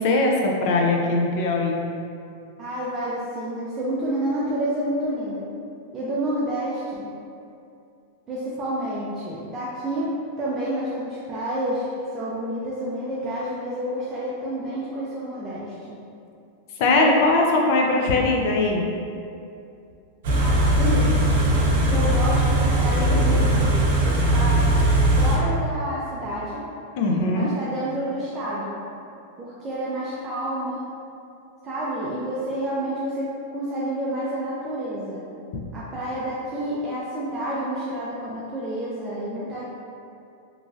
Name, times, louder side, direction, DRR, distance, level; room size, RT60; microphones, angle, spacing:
voice 1, 0.0-1.8 16.8-18.9 27.0-27.5, left 2 dB, 55° left, 0 dB, 0.4 m, -20 dB
voice 2, 2.6-5.5 5.9-7.1 8.3-10.1 10.4-16.0 20.4-21.1 21.9-24.6 25.2-26.6 27.3-28.8 29.4-30.9 31.6-35.2 35.7-39.6, right 1 dB, 25° right, -8 dB, 0.4 m, -29 dB
Car / Idling, 20.2-25.4, right 1 dB, 65° right, 0.6 m, -19 dB
3.0 x 2.4 x 2.5 m, 2.6 s
supercardioid pair, 145°, 0 cm